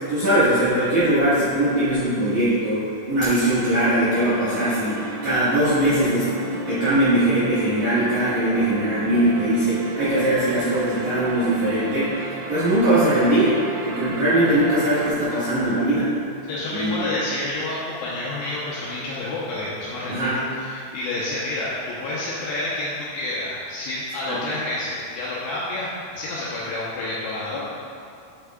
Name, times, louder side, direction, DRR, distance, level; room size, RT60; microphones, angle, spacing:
voice 1, 0.1-6.3 6.5-12.2 12.5-13.5 13.8-16.2 16.7-16.9 20.1-20.4 24.2-24.4, right 1 dB, 60° right, -13 dB, 2.0 m, -21 dB
sound 1, 4.2-15.1, right 2 dB, 80° right, 2.7 m, -33 dB
voice 2, 16.5-27.6, left 2 dB, 80° left, -7 dB, 2.5 m, -29 dB
8.5 x 8.1 x 2.3 m, 2.6 s
omnidirectional pair, 5.6 m